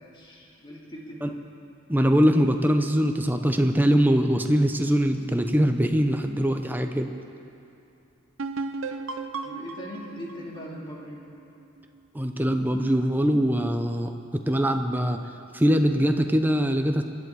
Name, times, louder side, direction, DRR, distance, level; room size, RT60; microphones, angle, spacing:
voice 1, 0.0-1.4 9.4-11.2, equal, 25° left, -3 dB, 2.4 m, -40 dB
voice 2, 1.9-7.1 12.1-15.2 15.5-17.0, equal, 10° right, 6 dB, 0.7 m, -22 dB
sound 1, 8.4-12.0, right 3 dB, 75° right, 0.8 m, -35 dB
25.5 x 11.0 x 4.8 m, 2.8 s
head